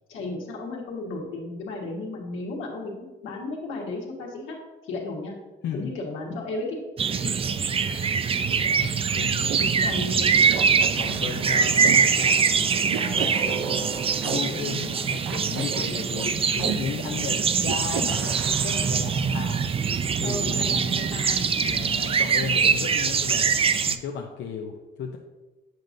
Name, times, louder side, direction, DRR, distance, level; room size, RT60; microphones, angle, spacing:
voice 1, 0.1-4.6 4.8-5.4 5.7-6.8 7.1-7.3 7.9-8.0 9.8-10.3 20.2-21.7, left 2 dB, 90° left, -1 dB, 1.4 m, -34 dB
sound 1, 7.0-24.0, right 6 dB, 30° right, 0.3 m, -23 dB
voice 2, 8.5-10.0 10.8-21.0 21.5-23.6 23.9-25.2, left 6 dB, 70° left, 1 dB, 0.6 m, -35 dB
sound 2, 9.5-9.7 10.5-12.0 12.9-14.4 15.3-16.8 17.6-19.0, right 8 dB, 85° right, 0.5 m, -33 dB
7.7 x 5.1 x 2.6 m, 1.2 s
cardioid pair, 90°, 20 cm